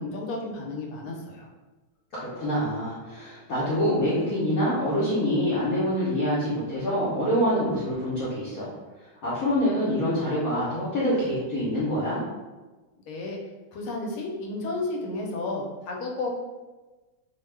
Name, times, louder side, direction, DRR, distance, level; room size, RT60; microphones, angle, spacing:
voice 1, 0.0-1.5 13.1-13.4 13.7-16.4, left 2 dB, 85° left, 0 dB, 1.5 m, -32 dB
voice 2, 2.1-8.7 9.2-12.2, equal, 60° left, -9 dB, 1.0 m, -26 dB
3.3 x 2.1 x 3.2 m, 1.2 s
omnidirectional pair, 2.3 m